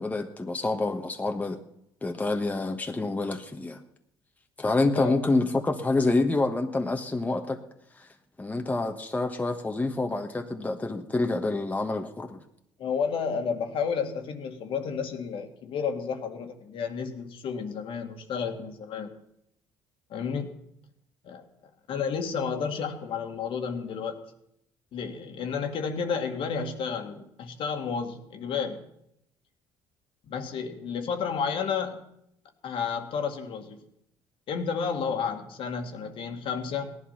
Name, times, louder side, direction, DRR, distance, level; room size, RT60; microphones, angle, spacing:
voice 1, 0.0-1.6 2.0-3.8 4.6-7.6 8.4-12.4, left 2 dB, 15° left, 4 dB, 1.4 m, -27 dB
voice 2, 4.9-5.4 12.8-19.2 20.1-20.6 21.2-21.4 21.9-24.2 24.9-28.8 30.3-32.0 32.6-33.8 34.5-37.0, left 6 dB, 65° left, 5 dB, 2.0 m, -31 dB
17.0 x 11.0 x 5.8 m, 0.77 s
supercardioid pair, 90°, 10 cm